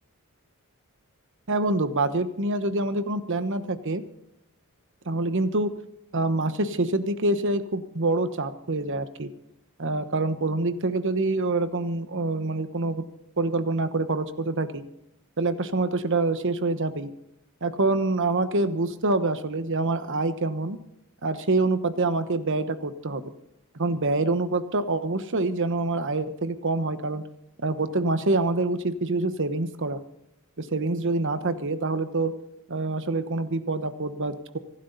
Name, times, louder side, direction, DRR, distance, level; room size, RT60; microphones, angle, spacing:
voice 1, 1.5-4.0 5.1-5.7 6.1-9.3 9.8-13.0 13.4-14.8 15.4-17.1 17.6-20.8 21.2-23.2 23.8-27.2 27.6-30.0 30.6-32.3 32.7-34.6, right 2 dB, 60° right, 11 dB, 1.1 m, -26 dB
25.5 x 12.0 x 4.1 m, 0.78 s
head